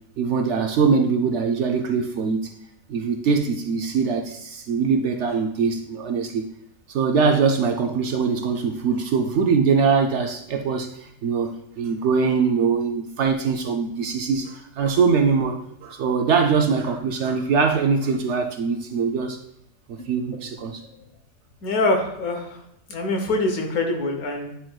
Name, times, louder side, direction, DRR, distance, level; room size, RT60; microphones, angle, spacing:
voice 1, 0.2-2.5 2.9-6.5 6.9-19.4 19.9-20.8, right 5 dB, 65° right, 4 dB, 0.8 m, -22 dB
voice 2, 20.3-20.7 21.6-22.6 22.9-24.6, left 2 dB, 85° left, 3 dB, 1.5 m, -25 dB
10.0 x 4.5 x 2.3 m, 0.75 s
omnidirectional pair, 1.5 m